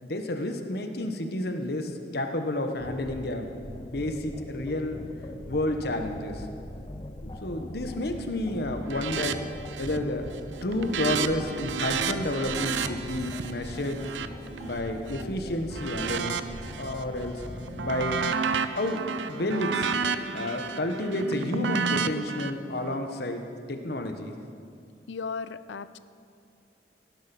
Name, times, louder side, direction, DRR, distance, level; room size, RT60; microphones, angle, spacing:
voice 1, 0.0-3.5 3.8-5.0 5.5-6.5 7.2-9.4 9.8-10.3 10.6-14.0 14.6-16.4 16.8-17.4 17.8-18.2 18.7-19.9 20.3-24.4, left 1 dB, 60° left, 5 dB, 1.2 m, -30 dB
sound 1, 2.8-18.2, left 1 dB, 25° left, 0.6 m, -41 dB
sound 2, 8.9-9.4 9.6-10.1 10.4-15.2 15.7-17.0 17.4-22.5, right 5 dB, 85° right, 0.6 m, -31 dB
Wind instrument woodwind instrument, 18.5-22.0, left 1 dB, 10° left, 1.6 m, -47 dB
voice 2, 25.1-26.0, left 5 dB, 90° left, 14 dB, 0.5 m, -35 dB
16.5 x 10.5 x 6.0 m, 2.4 s
head